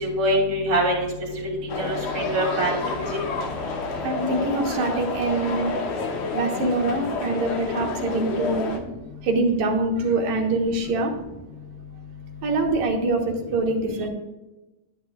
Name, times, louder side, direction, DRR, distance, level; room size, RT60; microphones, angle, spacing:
voice 1, 0.0-1.1 1.8-2.8, right 1 dB, 25° right, -4 dB, 3.1 m, -23 dB
sound 1, 1.7-8.8, left 3 dB, 70° left, 2.1 m, -29 dB
voice 2, 4.0-5.7 6.3-8.7 9.2-11.1 12.4-14.1, right 2 dB, 65° right, 2 dB, 2.4 m, -24 dB
10.0 x 10.0 x 2.4 m, 1.0 s
omnidirectional pair, 3.7 m